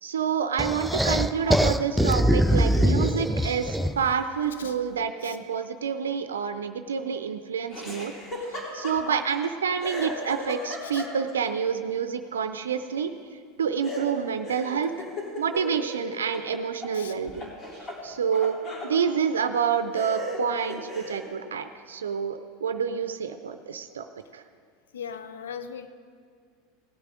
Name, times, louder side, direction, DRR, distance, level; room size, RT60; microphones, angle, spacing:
voice 1, 0.0-8.1 8.5-13.1 13.6-14.9 15.4-17.5 18.0-18.6 18.8-24.1 24.3-24.4, right 7 dB, 85° right, 9 dB, 0.5 m, -28 dB
sound 1, 0.6-4.1, equal, 5° right, 0.4 m, -23 dB
Laughter, 7.7-9.5 9.8-11.5 13.8-17.0 17.3-18.9 19.5-19.6 19.9-21.3, left 1 dB, 35° left, 3.6 m, -36 dB
voice 2, 24.9-25.9, left 7 dB, 80° left, 10 dB, 0.7 m, -39 dB
17.5 x 8.1 x 5.0 m, 2.1 s
hypercardioid pair, 90°, 0 cm